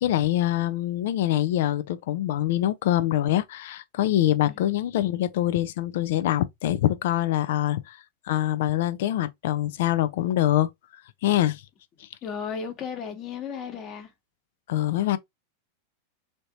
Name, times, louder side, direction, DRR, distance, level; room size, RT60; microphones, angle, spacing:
voice 1, 0.0-8.0 8.2-10.7 11.2-11.6 12.0-12.1 14.7-15.2, left 13 dB, 70° left, 0.4 m, -24 dB
voice 2, 12.2-14.1, left 6 dB, 40° left, 1.2 m, -34 dB
3.2 x 2.8 x 2.7 m
hypercardioid pair, 100°, 0 cm